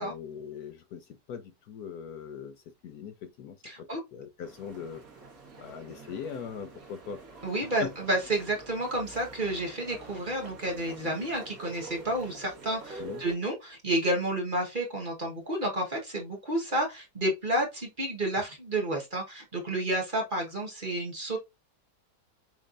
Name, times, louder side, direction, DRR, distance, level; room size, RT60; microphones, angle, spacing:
voice 1, 0.0-2.6 2.8-5.0 5.6-7.2 7.6-7.9 13.0-13.2, left 7 dB, 70° left, 1.0 m, -40 dB
voice 2, 3.6-4.0 7.4-21.4, right 1 dB, 30° right, 1.3 m, -30 dB
sound 1, 4.4-13.4, right 3 dB, 55° right, 2.0 m, -47 dB
6.3 x 3.3 x 2.5 m
omnidirectional pair, 1.9 m